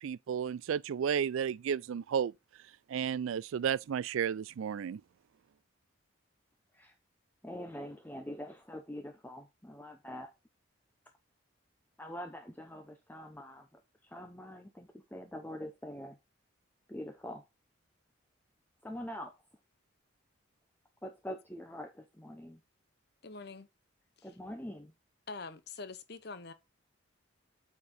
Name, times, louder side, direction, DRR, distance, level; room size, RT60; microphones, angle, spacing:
voice 1, 0.0-2.3 2.9-5.0, right 8 dB, 75° right, 0.3 m, -32 dB
voice 2, 7.4-10.3 12.0-16.2 16.9-17.4 18.8-19.4 21.0-22.6 24.2-24.9, left 1 dB, 10° left, 0.6 m, -44 dB
voice 3, 23.2-23.7 24.2-24.3 25.3-26.5, left 4 dB, 50° left, 0.9 m, -44 dB
8.3 x 4.5 x 4.1 m
head